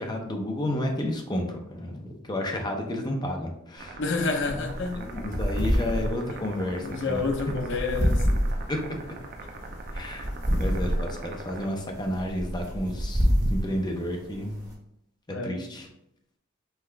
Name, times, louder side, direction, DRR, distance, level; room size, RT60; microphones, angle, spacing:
voice 1, 0.0-4.0 5.0-7.3 8.7-9.0 9.9-14.6 15.3-15.9, left 1 dB, 20° left, 2 dB, 0.6 m, -31 dB
sound 1, 3.8-11.6, right 3 dB, 45° right, 0.5 m, -43 dB
voice 2, 4.0-5.0 5.9-6.4 6.8-8.5 15.3-15.6, left 3 dB, 60° left, 4 dB, 0.6 m, -30 dB
sound 2, 4.2-14.7, equal, 15° right, 1.3 m, -28 dB
5.6 x 2.4 x 3.3 m, 0.80 s
head